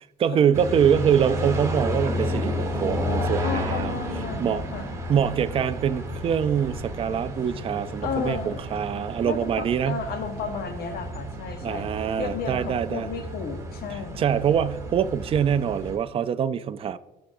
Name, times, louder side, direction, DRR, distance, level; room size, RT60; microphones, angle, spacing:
voice 1, 0.2-4.0 4.4-4.6 5.1-10.0 11.6-13.1 14.2-17.0, right 8 dB, 35° right, 0.4 m, -24 dB
sound 1, 0.5-16.0, left 1 dB, 20° right, 1.3 m, -32 dB
sound 2, 1.2-12.9, right 6 dB, 60° right, 1.3 m, -45 dB
voice 2, 3.4-4.9 8.0-8.6 9.2-11.9 12.2-14.3, left 6 dB, 70° left, 1.1 m, -33 dB
13.5 x 5.8 x 2.6 m
cardioid pair, 110°, 17 cm